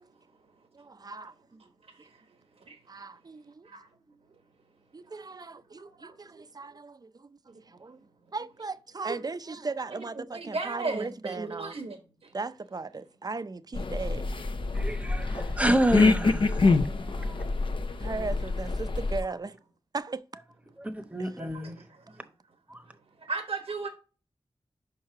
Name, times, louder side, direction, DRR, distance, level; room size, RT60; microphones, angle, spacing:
voice 1, 0.7-1.6 2.0-2.1 2.9-3.7 4.9-8.0 8.3-11.7 12.3-14.3 16.6-16.8 18.0-19.6 19.9-20.2 21.2-21.3, right 3 dB, 40° right, 0.5 m, -37 dB
voice 2, 6.0-6.4 9.1-9.2 10.3-12.0 12.2-12.3 21.4-21.5 21.8-22.2 23.3-23.9, right 3 dB, 80° right, 1.1 m, -35 dB
sound 1, 13.7-19.2, left 3 dB, 60° left, 0.7 m, -26 dB
voice 3, 14.7-16.7 17.0-17.4 20.8-21.8 22.7-22.8, right 1 dB, 15° right, 0.9 m, -29 dB
5.5 x 4.8 x 5.7 m
wide cardioid pair, 65°, 10 cm